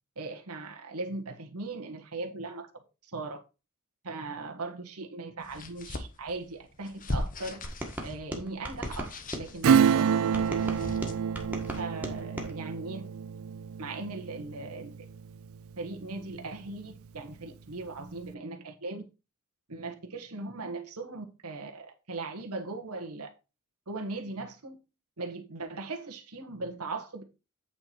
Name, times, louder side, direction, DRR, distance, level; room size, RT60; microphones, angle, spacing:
voice 1, 0.2-2.7 3.0-3.4 4.0-7.6 8.0-10.5 11.8-13.1 13.8-14.9 15.8-19.0 19.7-23.3 23.9-24.8 25.2-27.2, right 3 dB, 85° right, 1.4 m, -39 dB
Paper Rubbing and Flipping, 5.4-11.8, left 1 dB, 40° left, 1.1 m, -39 dB
sound 1, 7.6-9.8 10.3-12.5, equal, 5° right, 1.6 m, -38 dB
Acoustic guitar / Strum, 9.6-15.8 16.2-16.3, right 7 dB, 65° right, 0.3 m, -28 dB
8.7 x 4.5 x 4.5 m
head